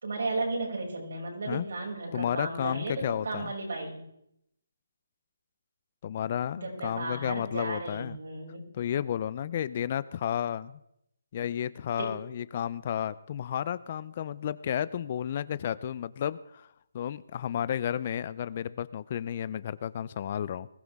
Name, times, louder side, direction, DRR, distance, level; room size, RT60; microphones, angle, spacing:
voice 1, 0.0-4.0 6.6-8.7 11.9-12.1, right 2 dB, 70° right, -2 dB, 6.3 m, -34 dB
voice 2, 2.1-3.5 6.0-8.2 8.7-10.8 11.3-16.7 16.9-20.7, left 9 dB, 35° left, 18 dB, 0.5 m, -32 dB
20.5 x 15.0 x 3.6 m, 0.77 s
hypercardioid pair, 165°, 0 cm